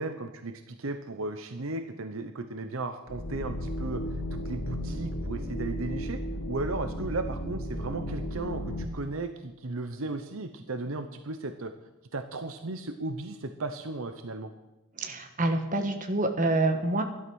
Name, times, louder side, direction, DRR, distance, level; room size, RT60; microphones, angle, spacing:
voice 1, 0.0-6.2 6.5-11.7 12.1-14.5, right 2 dB, 65° right, 8 dB, 0.8 m, -35 dB
sound 1, 3.1-8.9, equal, 70° left, 1.8 m, -34 dB
voice 2, 15.0-17.0, right 2 dB, 35° right, 5 dB, 1.4 m, -27 dB
12.5 x 11.5 x 6.3 m, 1.0 s
head